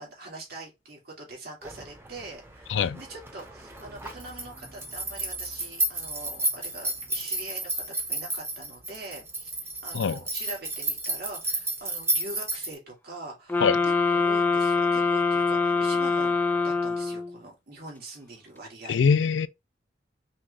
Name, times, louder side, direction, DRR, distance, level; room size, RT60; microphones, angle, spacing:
voice 1, 0.0-16.4 16.6-19.3, right 2 dB, 60° right, 2.4 m, -43 dB
sound 1, 1.6-12.7, right 2 dB, 15° right, 0.8 m, -32 dB
sound 2, 13.5-17.4, left 4 dB, 10° left, 0.5 m, -24 dB
voice 2, 18.9-19.5, left 6 dB, 85° left, 0.4 m, -22 dB
5.6 x 2.4 x 3.3 m
head